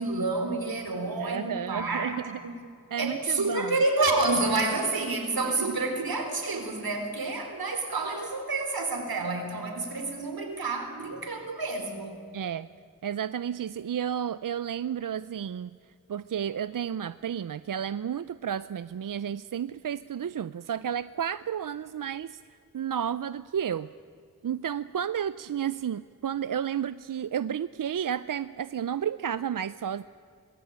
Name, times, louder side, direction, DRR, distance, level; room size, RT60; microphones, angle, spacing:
voice 1, 0.0-2.1 2.4-2.5 3.0-12.2, right 3 dB, 90° right, 5 dB, 4.1 m, -29 dB
voice 2, 1.2-2.4 2.9-3.8 5.7-5.8 12.3-12.7 13.0-15.7 16.1-23.9 24.4-30.0, right 8 dB, 65° right, 15 dB, 0.5 m, -32 dB
26.5 x 20.0 x 8.8 m, 2.4 s
wide cardioid pair, 85°, 35 cm